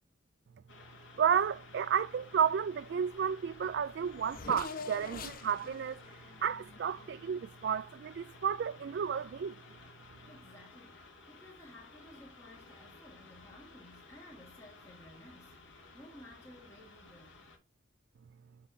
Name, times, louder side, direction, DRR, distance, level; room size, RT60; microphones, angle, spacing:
sound 1, 0.7-17.6, left 3 dB, 60° left, 2.3 m, -55 dB
voice 1, 1.2-6.0 6.4-9.6, right 7 dB, 50° right, 0.3 m, -32 dB
Race car auto racing / Accelerating revving vroom, 3.2-3.3 3.5-7.5, left 3 dB, 45° left, 1.0 m, -46 dB
voice 2, 10.2-17.4, left 1 dB, 15° left, 1.9 m, -55 dB
7.1 x 6.7 x 2.7 m
head